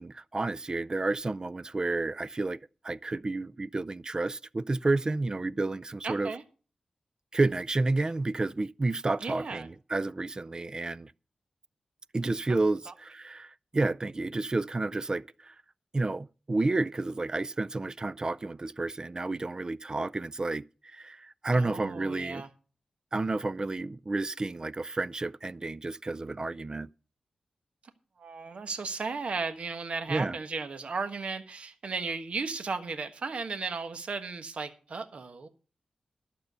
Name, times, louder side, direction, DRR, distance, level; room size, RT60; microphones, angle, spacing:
voice 1, 0.0-6.3 7.3-11.1 12.1-15.5 15.9-20.6 20.9-22.4 23.1-26.9 30.1-30.4, right 2 dB, 35° right, 0.4 m, -30 dB
voice 2, 6.0-6.4 9.2-9.7 12.5-12.6 12.9-13.0 21.5-22.5 28.2-35.5, right 4 dB, 65° right, 1.3 m, -35 dB
11.5 x 6.8 x 6.7 m
cardioid pair, 65°, 2 cm